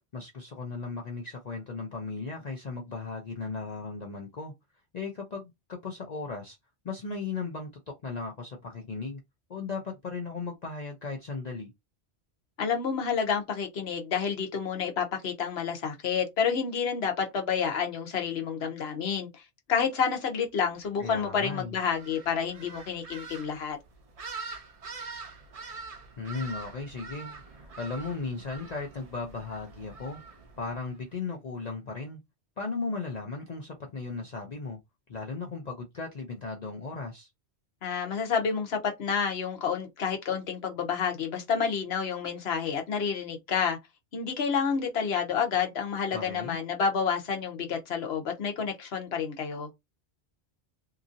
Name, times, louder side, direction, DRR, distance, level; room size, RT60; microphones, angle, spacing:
voice 1, 0.1-4.5 4.9-6.6 6.8-9.2 9.5-11.7 21.0-21.8 26.2-30.2 30.6-32.2 32.6-34.8 35.1-37.3 46.1-46.6, left 4 dB, 45° left, 0.6 m, -36 dB
voice 2, 12.6-19.4 19.7-23.8 37.8-43.8 44.1-49.7, left 6 dB, 70° left, 1.1 m, -29 dB
sound 1, 21.9-31.0, right 4 dB, 40° right, 0.6 m, -44 dB
2.9 x 2.6 x 2.5 m
omnidirectional pair, 1.1 m